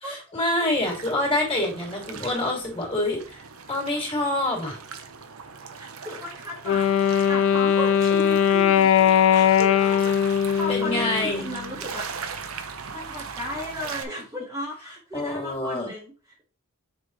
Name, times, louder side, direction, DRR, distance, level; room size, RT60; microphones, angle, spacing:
voice 1, 0.0-4.8 10.7-11.4 15.1-15.9, left 1 dB, 25° left, -1 dB, 2.5 m, -26 dB
voice 2, 0.6-1.2 5.7-12.1 12.9-16.1, left 1 dB, 15° right, -3 dB, 1.3 m, -35 dB
sound 1, 0.7-14.0, right 5 dB, 75° right, 0.8 m, -39 dB
Wind instrument woodwind instrument, 6.6-11.7, left 9 dB, 65° left, 0.4 m, -20 dB
6.9 x 4.3 x 3.2 m, 0.35 s
head